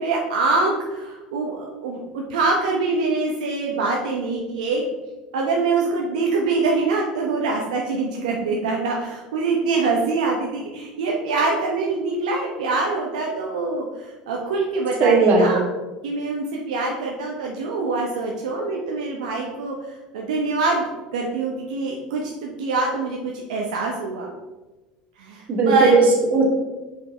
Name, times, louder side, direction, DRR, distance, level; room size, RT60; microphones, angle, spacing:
voice 1, 0.0-4.8 5.3-15.6 16.0-19.8 20.1-20.8 21.1-24.3 25.2-26.0, right 3 dB, 75° right, -1 dB, 0.9 m, -24 dB
voice 2, 15.0-15.6 25.5-26.4, right 3 dB, 40° right, -1 dB, 1.9 m, -17 dB
5.1 x 5.0 x 4.4 m, 1.1 s
hypercardioid pair, 75°, 4 cm